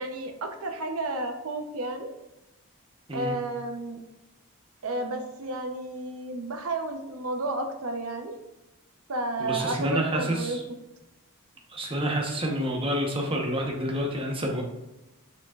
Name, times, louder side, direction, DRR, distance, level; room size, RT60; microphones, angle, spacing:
voice 1, 0.0-2.1 3.1-4.0 4.8-8.4 9.1-10.6, right 2 dB, 75° right, 5 dB, 0.8 m, -32 dB
voice 2, 9.4-10.6 11.7-14.6, equal, 25° right, 1 dB, 1.0 m, -28 dB
6.4 x 6.0 x 2.4 m, 1.0 s
head